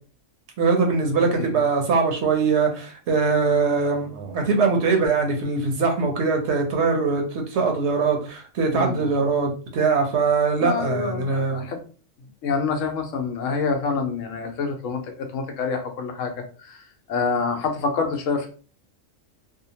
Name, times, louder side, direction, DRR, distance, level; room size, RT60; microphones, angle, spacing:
voice 1, 0.6-11.6, right 4 dB, 65° right, 0.9 m, -22 dB
voice 2, 8.7-9.2 10.6-11.8 12.4-16.8 17.1-18.5, left 4 dB, 75° left, 1.0 m, -27 dB
2.7 x 2.1 x 2.7 m
omnidirectional pair, 1.3 m